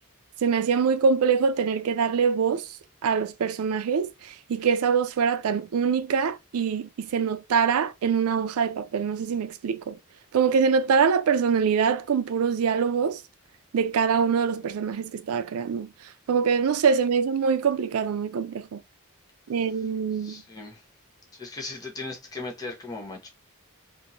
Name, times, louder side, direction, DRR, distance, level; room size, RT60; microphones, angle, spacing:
voice 1, 0.4-2.7 3.0-10.0 10.3-13.2 13.7-15.9 16.3-18.8 19.5-20.4, right 6 dB, 90° right, 0.4 m, -24 dB
voice 2, 20.2-20.8 21.4-23.3, left 3 dB, 15° left, 0.7 m, -37 dB
2.9 x 2.5 x 2.5 m
head